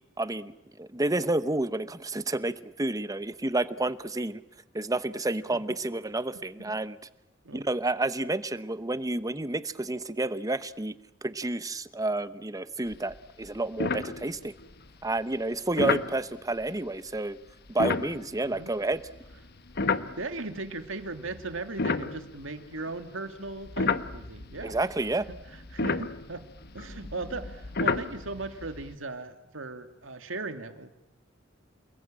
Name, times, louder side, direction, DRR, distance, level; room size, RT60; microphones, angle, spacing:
voice 1, 0.2-0.5 0.8-4.4 4.7-7.0 7.5-10.9 11.2-14.5 15.0-17.4 17.7-19.0 24.6-25.3, right 2 dB, 20° right, 13 dB, 1.0 m, -30 dB
voice 2, 6.3-6.8 7.4-7.7 15.8-16.0 18.6-18.7 20.2-24.8 25.3-26.4 26.7-30.9, right 3 dB, 75° right, 7 dB, 2.4 m, -38 dB
sound 1, 12.9-13.2 13.4-13.5 13.8-14.6 15.8-16.1 17.7-20.6 21.2-23.0 23.5-28.9, left 4 dB, 55° left, 1.2 m, -31 dB
29.5 x 21.0 x 8.9 m, 0.86 s
head